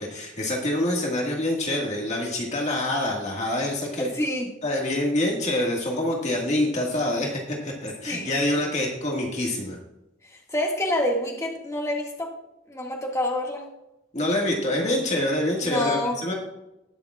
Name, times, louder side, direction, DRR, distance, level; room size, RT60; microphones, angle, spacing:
voice 1, 0.0-4.1 4.6-9.8 14.1-16.3, left 1 dB, 40° left, -1 dB, 1.8 m, -26 dB
voice 2, 4.0-4.5 8.1-8.4 10.3-12.3 12.7-13.7 15.6-16.2, left 1 dB, 15° left, -1 dB, 1.8 m, -27 dB
19.5 x 6.9 x 2.4 m, 0.88 s
head